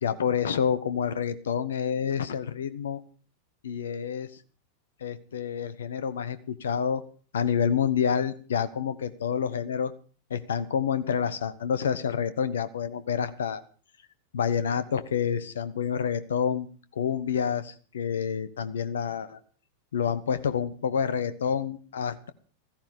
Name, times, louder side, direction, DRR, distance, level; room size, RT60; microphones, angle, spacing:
voice 1, 0.0-3.0 3.6-4.3 5.0-7.0 7.3-9.9 10.3-13.6 14.3-16.7 16.9-19.4 19.9-22.3, left 7 dB, 65° left, 14 dB, 1.2 m, -28 dB
15.5 x 14.5 x 5.2 m, 0.40 s
figure-of-eight pair, 90°, 0 cm